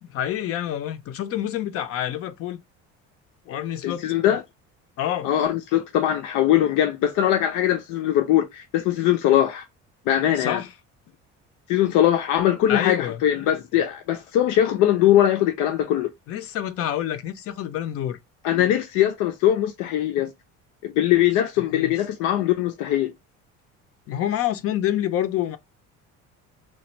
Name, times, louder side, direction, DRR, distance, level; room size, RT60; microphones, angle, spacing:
voice 1, 0.0-2.6 3.4-4.0 5.0-5.3 10.4-10.7 12.7-13.2 16.3-18.2 21.6-22.0 24.1-25.6, left 11 dB, 50° left, 0.6 m, -27 dB
voice 2, 3.8-4.4 5.2-9.6 10.1-10.6 11.7-16.1 18.4-20.3 20.8-23.1, left 11 dB, 85° left, 0.8 m, -21 dB
3.1 x 2.4 x 4.3 m
cardioid pair, 150°, 30 cm